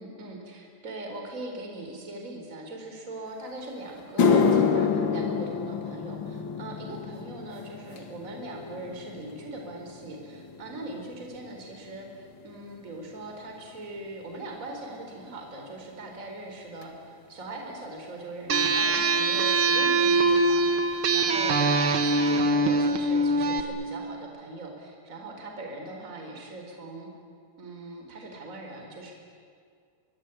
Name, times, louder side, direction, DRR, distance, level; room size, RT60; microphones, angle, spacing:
voice 1, 0.0-27.1 27.6-29.1, right 2 dB, 20° right, 2 dB, 4.2 m, -41 dB
sound 1, 3.5-3.6 4.0-12.5 12.8-13.2 14.0-14.1 16.8-16.9 18.6-18.7 18.8-19.1 19.3-19.9 20.3-20.4 20.9-21.0, left 5 dB, 65° left, 1.1 m, -29 dB
sound 2, 18.5-23.6, right 2 dB, 70° right, 1.2 m, -23 dB
24.0 x 24.0 x 10.0 m, 2.2 s
omnidirectional pair, 4.9 m